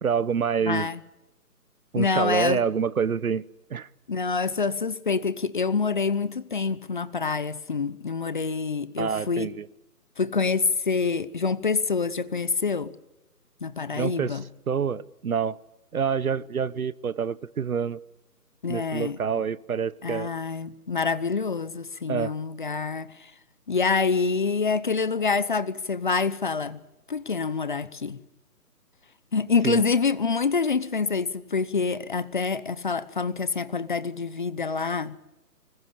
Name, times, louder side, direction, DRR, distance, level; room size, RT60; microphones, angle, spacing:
voice 1, 0.0-0.9 1.9-3.4 3.7-3.9 9.0-9.7 13.9-14.4 14.7-15.6 15.9-18.0 18.7-20.3 22.1-22.3 29.6-29.8, right 7 dB, 65° right, 1.2 m, -27 dB
voice 2, 0.7-1.0 2.0-2.6 4.1-9.5 10.2-12.9 13.6-14.4 18.6-19.2 20.0-23.3 23.7-26.8 27.1-28.2 29.3-35.2, left 5 dB, 30° left, 0.9 m, -26 dB
25.5 x 21.0 x 8.5 m
hypercardioid pair, 170°, 47 cm